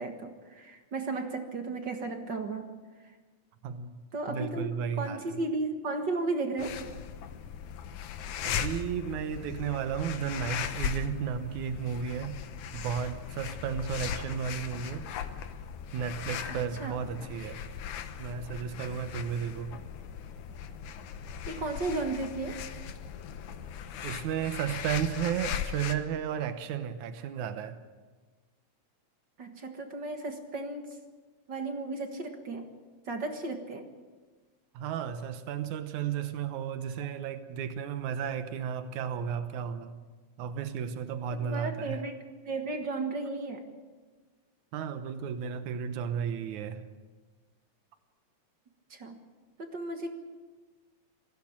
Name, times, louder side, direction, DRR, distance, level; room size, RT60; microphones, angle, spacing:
voice 1, 0.0-2.7 4.1-6.8 16.8-17.0 21.5-22.6 29.4-30.9 31.5-32.7 33.1-33.9 41.4-42.2 42.5-43.6 48.9-49.2 49.6-50.1, right 3 dB, 45° right, 5 dB, 1.9 m, -34 dB
voice 2, 3.6-5.4 8.4-12.4 12.7-15.1 15.9-17.6 18.2-19.8 24.0-27.8 34.7-40.0 40.4-42.0 44.7-46.8, right 8 dB, 85° right, 9 dB, 2.5 m, -33 dB
sound 1, 6.6-25.9, left 8 dB, 85° left, 2.5 m, -38 dB
21.0 x 16.0 x 8.8 m, 1.4 s
omnidirectional pair, 3.3 m